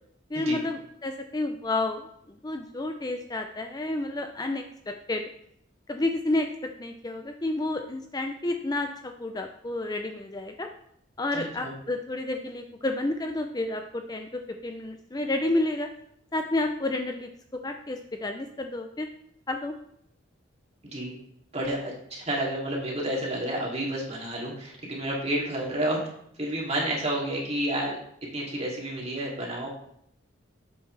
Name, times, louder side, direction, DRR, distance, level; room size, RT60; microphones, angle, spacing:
voice 1, 0.3-2.0 2.4-5.3 5.9-10.7 11.2-15.9 16.3-17.3 17.6-19.1 19.5-19.7, left 2 dB, 20° left, 5 dB, 0.5 m, -30 dB
voice 2, 11.3-11.7 20.8-21.2 21.5-26.1 26.4-28.0 28.3-29.7, right 1 dB, 35° right, -3 dB, 2.8 m, -30 dB
10.0 x 7.9 x 3.3 m, 0.71 s
head